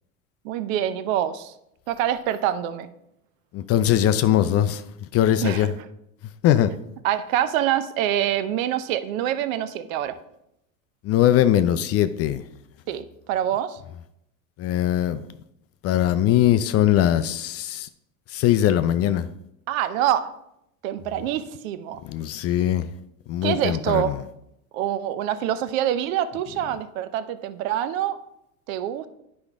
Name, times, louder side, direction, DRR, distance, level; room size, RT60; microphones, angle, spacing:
voice 1, 0.4-1.5 1.9-2.9 5.4-5.7 7.0-10.1 12.9-13.8 19.7-20.3 20.8-22.0 23.4-24.1 24.7-28.2 28.7-29.1, right 11 dB, 65° right, 12 dB, 0.7 m, -25 dB
voice 2, 3.5-4.8 5.1-5.7 6.4-6.7 11.0-12.4 14.6-15.2 15.8-17.9 18.3-19.3 22.0-22.9 23.3-24.2, left 11 dB, 35° left, 12 dB, 0.4 m, -21 dB
9.7 x 5.2 x 3.5 m, 0.80 s
hypercardioid pair, 95°, 43 cm